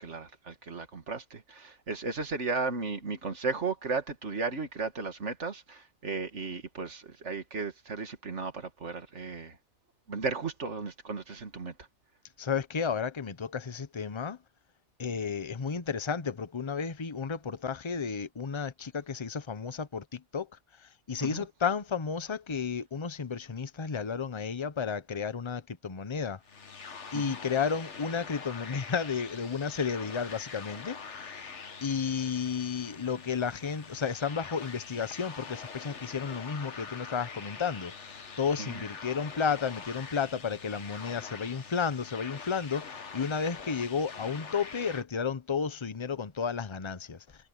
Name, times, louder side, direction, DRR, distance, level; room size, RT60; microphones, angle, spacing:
voice 1, 0.0-9.6 10.1-11.7 21.2-21.5 27.1-27.4 38.6-38.8, right 4 dB, 85° right, 2.3 m, -35 dB
voice 2, 12.4-14.4 15.0-20.5 20.8-26.4 27.1-31.4 31.8-47.2, left 6 dB, 30° left, 0.9 m, -32 dB
sound 1, 26.4-45.0, left 5 dB, 80° left, 1.8 m, -44 dB
omnidirectional pair, 1.2 m